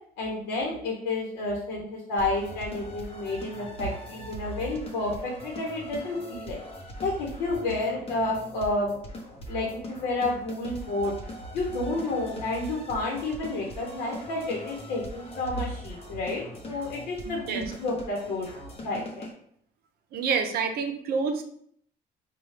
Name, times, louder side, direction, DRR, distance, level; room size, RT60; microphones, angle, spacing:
voice 1, 0.2-6.6 7.0-8.9 9.5-11.1 11.5-18.5 18.8-19.3, left 2 dB, 85° left, -2 dB, 0.9 m, -30 dB
sound 1, 2.2-19.3, equal, 35° left, 0.8 m, -42 dB
voice 2, 17.2-17.7 20.1-21.4, right 5 dB, 65° right, 6 dB, 0.6 m, -28 dB
4.3 x 2.3 x 3.2 m, 0.65 s
cardioid pair, 110°, 17 cm